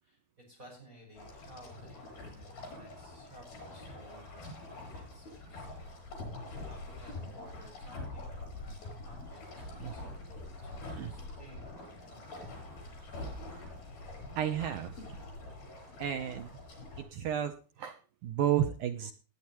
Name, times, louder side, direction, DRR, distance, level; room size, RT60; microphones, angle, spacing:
voice 1, 0.0-5.9 6.2-6.4 6.6-12.4, equal, 20° right, -1 dB, 5.7 m, -56 dB
sound 1, 1.2-17.0, left 2 dB, 80° left, 8.5 m, -45 dB
voice 2, 14.4-15.2 16.0-16.5 17.0-19.1, right 10 dB, 75° right, 8 dB, 1.9 m, -32 dB
19.0 x 10.0 x 3.0 m, 0.35 s
omnidirectional pair, 4.4 m